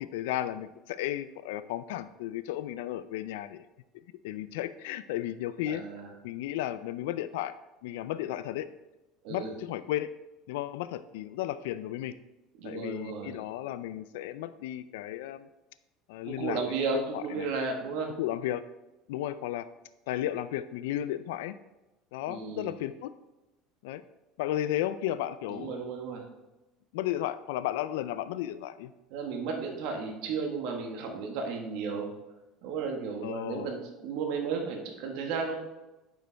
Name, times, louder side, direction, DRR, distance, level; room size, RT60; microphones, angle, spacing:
voice 1, 0.0-3.6 4.2-5.8 6.2-7.5 7.8-8.7 9.3-10.1 10.5-12.1 12.6-15.5 16.1-16.6 16.9-17.5 18.2-18.6 19.1-19.7 20.1-21.6 22.1-23.1 23.8-24.0 24.4-25.8 26.9-28.9 33.2-33.7, left 13 dB, 85° left, 13 dB, 0.3 m, -34 dB
voice 2, 5.7-6.1 9.2-9.5 12.6-13.4 16.2-18.1 22.3-22.7 25.5-26.3 29.1-32.1 32.6-35.6, right 5 dB, 70° right, 2 dB, 1.3 m, -34 dB
9.0 x 5.1 x 3.4 m, 1.0 s
supercardioid pair, 130°, 0 cm